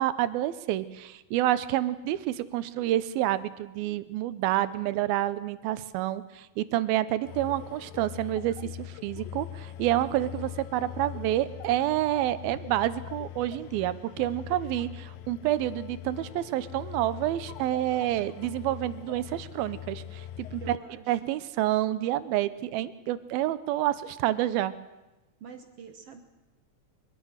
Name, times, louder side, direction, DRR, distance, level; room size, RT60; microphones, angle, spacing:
voice 1, 0.0-20.8 21.1-24.7, right 14 dB, 85° right, 15 dB, 2.7 m, -28 dB
sound 1, 7.3-20.8, left 11 dB, 80° left, 2.5 m, -42 dB
voice 2, 20.6-21.2 25.4-26.2, right 6 dB, 60° right, 7 dB, 1.6 m, -45 dB
22.5 x 22.5 x 6.5 m, 1.1 s
omnidirectional pair, 4.2 m